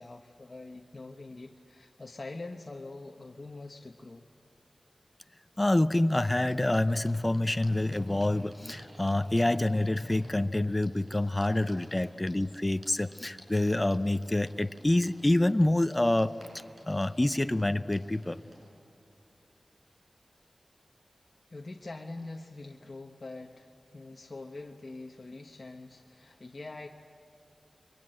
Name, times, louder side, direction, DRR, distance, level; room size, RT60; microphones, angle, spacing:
voice 1, 0.0-4.2 11.9-12.1 21.5-26.9, left 2 dB, 45° left, 2 dB, 1.1 m, -44 dB
voice 2, 5.6-16.4 16.8-18.4, left 1 dB, 25° left, 12 dB, 0.7 m, -27 dB
sound 1, 6.0-18.7, right 1 dB, 60° right, 6.2 m, -56 dB
29.5 x 23.0 x 7.7 m, 2.6 s
wide cardioid pair, 65°, 0 cm